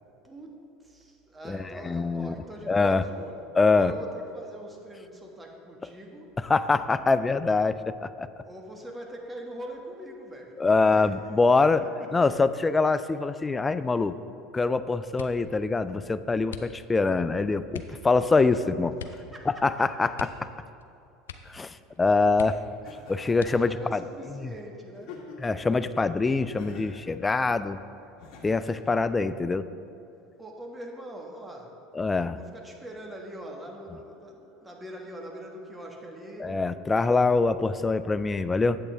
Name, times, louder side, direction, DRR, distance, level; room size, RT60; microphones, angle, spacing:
voice 1, 0.2-3.4 3.7-6.3 8.4-11.4 11.8-12.5 17.9-18.1 19.1-20.1 23.2-25.2 30.4-31.8 32.3-36.6, right 1 dB, 15° right, 1 dB, 1.4 m, -43 dB
voice 2, 1.9-2.3 2.7-3.0 3.6-3.9 6.5-8.3 10.6-11.8 12.1-14.2 14.5-18.9 19.6-20.1 21.5-22.6 23.1-23.8 24.4-24.5 25.4-27.8 28.4-29.7 32.0-32.4 36.4-38.8, left 3 dB, 20° left, 13 dB, 0.3 m, -24 dB
sound 1, 15.1-15.6 16.5-17.1 17.7-18.0 19.0-19.3 19.6-19.7 20.1-20.9 21.2-21.7 22.0-22.1 22.3-22.9 23.3-23.9 24.6-25.2 25.6-26.0, left 7 dB, 90° left, 0.4 m, -43 dB
Laughter, 22.8-23.9 24.9-25.7 26.6-27.1 28.2-29.0, left 4 dB, 60° left, 1.6 m, -46 dB
8.5 x 8.0 x 3.4 m, 2.7 s
hypercardioid pair, 85°, 0 cm